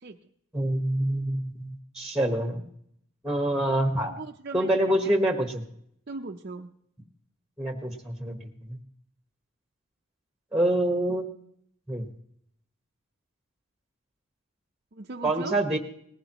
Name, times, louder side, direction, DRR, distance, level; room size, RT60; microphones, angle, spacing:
voice 1, 0.5-2.6 3.2-4.1 4.5-5.6 7.6-8.8 10.5-11.3 11.9-12.1 15.2-15.8, right 1 dB, ahead, 4 dB, 1.2 m, -26 dB
voice 2, 4.1-5.1 6.1-6.7 14.9-15.6, right 3 dB, 45° right, 2 dB, 0.6 m, -39 dB
19.0 x 15.0 x 3.0 m, 0.69 s
head